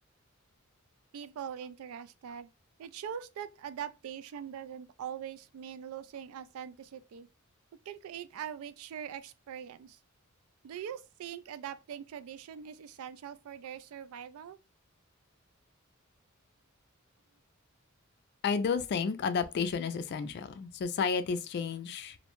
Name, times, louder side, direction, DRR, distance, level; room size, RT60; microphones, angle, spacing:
voice 1, 1.1-2.5 2.8-7.3 7.9-10.0 10.6-14.6, right 8 dB, 80° right, 0.3 m, -42 dB
voice 2, 18.4-22.2, left 5 dB, 50° left, 0.3 m, -31 dB
2.6 x 2.1 x 2.9 m
head